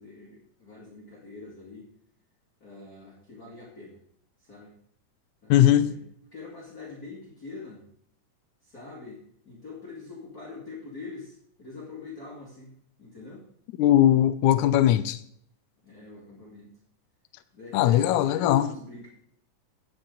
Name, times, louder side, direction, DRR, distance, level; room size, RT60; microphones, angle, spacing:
voice 1, 0.0-1.9 2.6-4.0 4.4-4.7 5.4-6.0 6.3-7.8 8.6-13.5 15.8-16.7 17.5-19.1, left 3 dB, 30° left, 2.2 m, -43 dB
voice 2, 5.5-5.9 13.8-15.2 17.7-18.6, left 12 dB, 80° left, 1.9 m, -19 dB
16.5 x 7.2 x 3.9 m
omnidirectional pair, 3.7 m